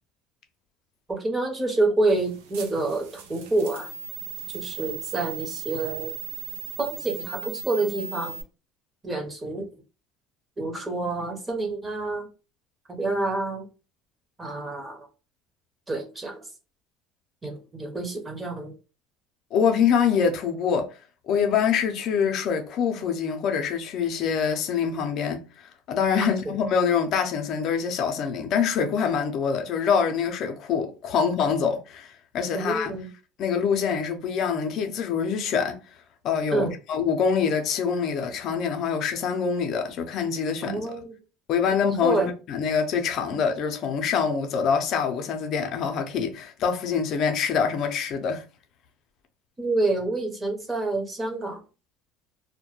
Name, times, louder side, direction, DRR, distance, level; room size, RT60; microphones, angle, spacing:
voice 1, 1.1-3.9 4.5-6.1 6.8-8.4 9.0-9.7 10.6-12.3 12.9-13.6 14.4-15.1 15.9-16.4 17.4-18.7 26.2-26.3 32.5-33.1 36.5-36.8 40.6-41.2 42.0-42.3 49.6-51.6, right 2 dB, 20° right, 0.8 m, -27 dB
sound 1, 2.1-8.4, right 8 dB, 90° right, 0.5 m, -38 dB
voice 2, 19.5-20.9 21.3-25.4 25.9-33.0 33.4-35.8 36.2-40.8 41.5-48.4, left 6 dB, 55° left, 0.5 m, -25 dB
2.2 x 2.1 x 2.9 m
supercardioid pair, 105°, 0 cm